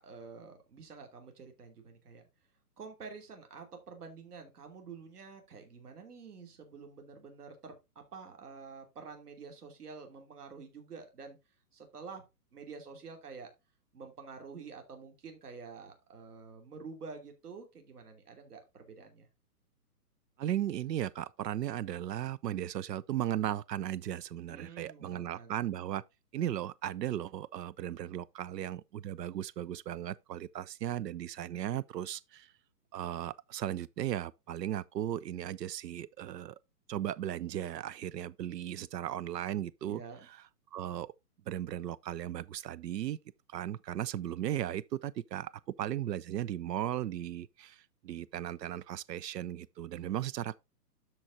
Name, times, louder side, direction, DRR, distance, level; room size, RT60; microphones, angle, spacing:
voice 1, 0.0-2.2 2.8-11.4 11.7-12.2 12.5-13.5 13.9-19.3 24.5-25.6 39.9-40.3 49.9-50.2, right 5 dB, 70° right, 3.0 m, -48 dB
voice 2, 20.4-26.0 26.3-32.5 32.9-36.6 36.9-40.0 40.3-40.4 40.7-41.1 41.5-43.2 43.5-45.5 45.8-50.5, right 12 dB, 90° right, 0.6 m, -36 dB
13.0 x 4.5 x 2.7 m
hypercardioid pair, 165°, 48 cm